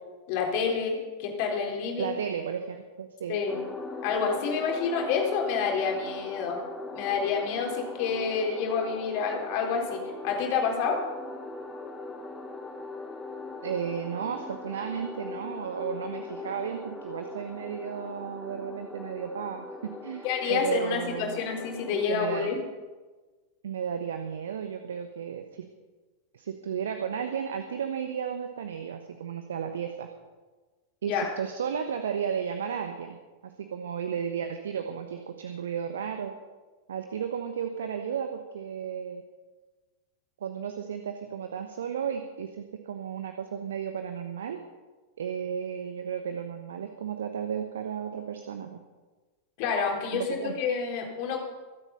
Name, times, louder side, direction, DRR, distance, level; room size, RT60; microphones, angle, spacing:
voice 1, 0.3-2.2 3.3-3.6 4.0-6.6 6.9-11.0 20.2-22.6 31.1-31.3 49.6-51.4, left 6 dB, 45° left, 1 dB, 3.8 m, -28 dB
voice 2, 2.0-3.4 13.6-21.4 22.1-22.5 23.6-25.7 26.3-30.1 31.0-33.2 33.4-36.3 36.9-39.2 40.4-44.6 45.2-48.8 50.1-50.6, right 7 dB, 65° right, 7 dB, 1.1 m, -33 dB
sound 1, 3.5-22.1, left 3 dB, 10° left, 3.0 m, -40 dB
23.5 x 8.3 x 5.7 m, 1.3 s
figure-of-eight pair, 90°, 0 cm